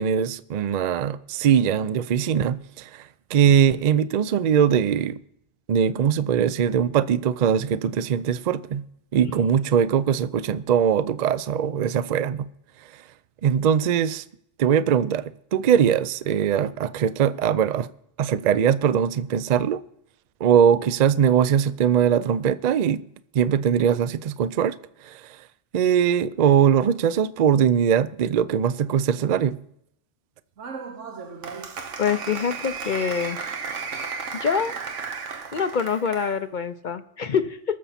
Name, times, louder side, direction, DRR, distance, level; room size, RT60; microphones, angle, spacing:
voice 1, 0.0-5.2 5.7-8.8 9.1-12.5 13.4-14.2 14.6-17.9 18.2-19.8 20.4-23.0 23.3-24.8 25.0-25.4 25.7-29.6, right 8 dB, 60° right, 0.4 m, -21 dB
Applause, 30.6-36.4, right 5 dB, 80° right, 1.4 m, -34 dB
voice 2, 32.0-33.4 34.4-34.8 35.5-37.8, left 6 dB, 50° left, 0.6 m, -25 dB
20.5 x 6.9 x 4.2 m
omnidirectional pair, 1.3 m